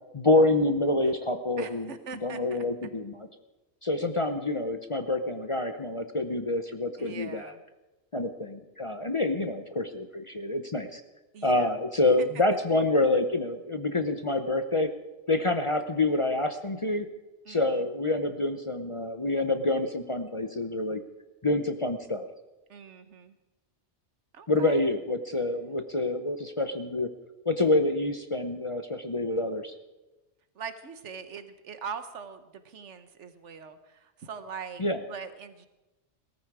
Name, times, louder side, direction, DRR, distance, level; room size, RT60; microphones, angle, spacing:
voice 1, 0.1-1.9 2.2-3.3 3.8-7.5 8.1-11.0 11.4-14.9 15.3-17.1 17.5-21.0 21.4-22.2 24.5-27.1 27.5-29.7 34.8-35.0, left 2 dB, 30° left, 8 dB, 0.7 m, -27 dB
voice 2, 1.6-2.7 7.0-7.6 11.3-11.7 12.2-12.3 17.5-17.9 22.7-23.3 24.3-24.8 30.5-35.7, right 6 dB, 75° right, 11 dB, 1.4 m, -42 dB
17.5 x 14.0 x 4.8 m, 1.1 s
omnidirectional pair, 1.2 m